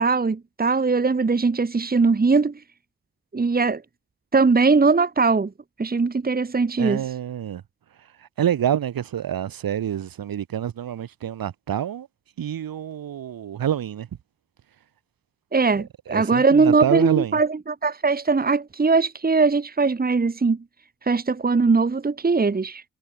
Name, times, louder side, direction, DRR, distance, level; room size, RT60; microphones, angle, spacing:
voice 1, 0.0-2.5 3.3-3.8 4.3-5.5 5.8-7.0 15.5-20.6 21.0-22.8, right 4 dB, 25° right, 1.9 m, -20 dB
voice 2, 6.8-7.6 8.0-12.1 12.4-14.1 15.8-17.4, right 10 dB, 70° right, 7.1 m, -27 dB
cardioid pair, 80°, 36 cm